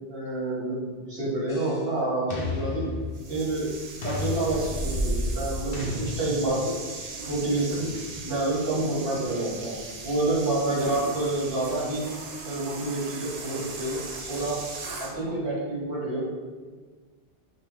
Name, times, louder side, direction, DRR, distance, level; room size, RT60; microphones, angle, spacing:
voice 1, 0.1-2.9 3.3-3.7 4.0-6.7 7.2-7.9 8.2-12.1 12.4-14.0 14.3-14.6 15.0-16.3, right 2 dB, 60° right, -5 dB, 1.6 m, -28 dB
sound 1, 1.5-1.9 2.3-3.6 4.0-5.1 5.7-6.8, left 4 dB, 65° left, 0.9 m, -34 dB
sound 2, 3.1-15.2, right 2 dB, 45° right, 0.6 m, -36 dB
3.5 x 3.2 x 4.5 m, 1.4 s
omnidirectional pair, 1.1 m